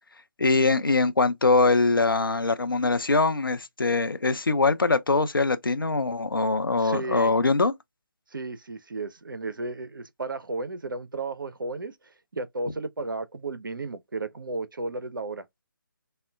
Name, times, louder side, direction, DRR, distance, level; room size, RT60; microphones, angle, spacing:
voice 1, 0.4-7.7, left 3 dB, 85° left, 0.5 m, -23 dB
voice 2, 6.8-7.3 8.3-11.9 12.3-15.4, right 3 dB, 70° right, 0.5 m, -33 dB
3.6 x 2.1 x 2.2 m
figure-of-eight pair, 145°, 11 cm